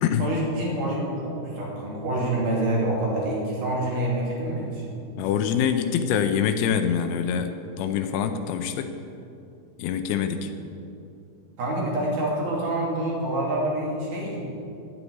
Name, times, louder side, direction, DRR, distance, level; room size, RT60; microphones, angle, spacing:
voice 1, 0.2-4.8 11.6-14.4, right 1 dB, 50° right, -4 dB, 3.7 m, -27 dB
voice 2, 5.2-8.9 9.8-10.5, left 8 dB, 90° left, 7 dB, 2.2 m, -25 dB
10.0 x 8.5 x 9.4 m, 2.6 s
omnidirectional pair, 5.3 m